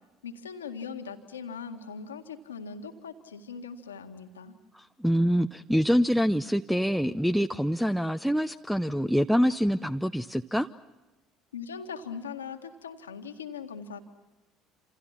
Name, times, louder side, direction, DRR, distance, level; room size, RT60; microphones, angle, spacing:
voice 1, 0.2-4.5 11.5-14.0, left 6 dB, 80° left, 6 dB, 1.8 m, -40 dB
voice 2, 4.7-10.7, equal, ahead, 12 dB, 0.7 m, -25 dB
28.0 x 28.0 x 5.9 m, 1.1 s
figure-of-eight pair, 60°, 0 cm